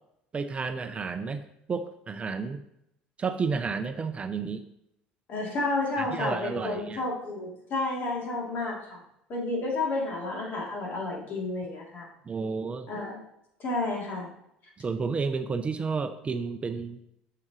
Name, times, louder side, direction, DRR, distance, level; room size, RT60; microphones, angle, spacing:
voice 1, 0.3-1.4 1.7-2.6 3.2-4.6 6.0-7.0 12.3-12.9 14.8-17.0, right 5 dB, 30° right, 9 dB, 0.6 m, -31 dB
voice 2, 5.3-9.0 9.3-12.1 12.9-13.2 13.6-14.3, left 2 dB, 50° left, -3 dB, 3.0 m, -31 dB
7.2 x 6.7 x 3.2 m, 0.77 s
hypercardioid pair, 75°, 4 cm